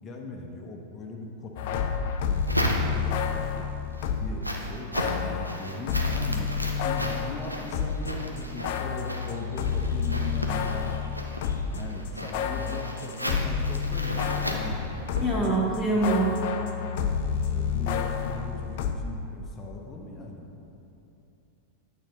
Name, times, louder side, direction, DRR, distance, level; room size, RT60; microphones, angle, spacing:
voice 1, 0.0-1.8 2.2-3.7 4.2-6.5 6.8-11.0 11.7-14.8 15.3-15.5 17.4-20.6, left 2 dB, 25° left, 1 dB, 0.7 m, -39 dB
sound 1, 1.6-4.4 4.9-8.1 8.4-15.5 15.7-18.9, left 7 dB, 50° left, 0.4 m, -29 dB
sound 2, 1.9-3.3 3.8-15.4, equal, 90° right, 0.6 m, -35 dB
voice 2, 15.1-16.6, right 2 dB, 10° right, -5 dB, 1.3 m, -25 dB
9.0 x 4.1 x 5.2 m, 3.0 s
figure-of-eight pair, 90°, 0 cm